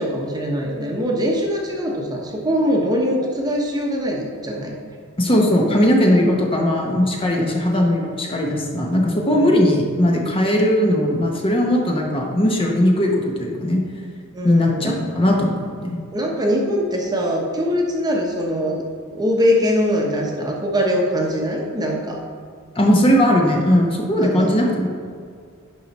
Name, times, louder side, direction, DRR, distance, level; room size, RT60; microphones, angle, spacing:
voice 1, 0.0-4.7 9.3-9.5 14.3-15.0 16.1-18.8 19.1-22.2 24.2-24.5, equal, 20° right, -1 dB, 1.0 m, -22 dB
voice 2, 5.2-13.8 14.4-16.0 22.8-24.9, equal, 25° left, 0 dB, 1.0 m, -18 dB
11.0 x 4.7 x 4.2 m, 2.2 s
head